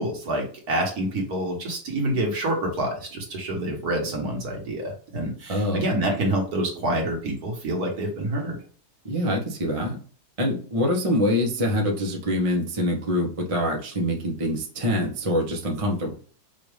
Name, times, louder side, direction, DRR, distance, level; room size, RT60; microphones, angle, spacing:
voice 1, 0.0-8.6, right 1 dB, 60° right, 0 dB, 1.7 m, -27 dB
voice 2, 5.5-5.9 9.0-10.0 10.4-16.1, equal, 25° right, 0 dB, 0.8 m, -25 dB
5.7 x 2.6 x 3.3 m, 0.43 s
omnidirectional pair, 1.9 m